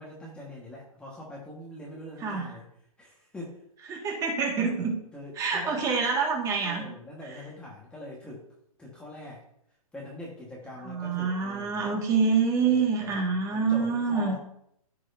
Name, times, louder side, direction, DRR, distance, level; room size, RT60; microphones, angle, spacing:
voice 1, 0.0-2.6 3.0-3.6 5.1-5.8 6.6-8.5 8.8-9.4 9.9-11.9 12.6-13.2 13.5-14.4, left 1 dB, 5° left, -4 dB, 1.4 m, -43 dB
voice 2, 2.2-2.5 3.9-4.9 5.3-6.9 7.2-7.5 10.8-14.4, right 5 dB, 20° right, 0 dB, 1.8 m, -26 dB
14.5 x 4.8 x 2.7 m, 0.72 s
hypercardioid pair, 145°, 19 cm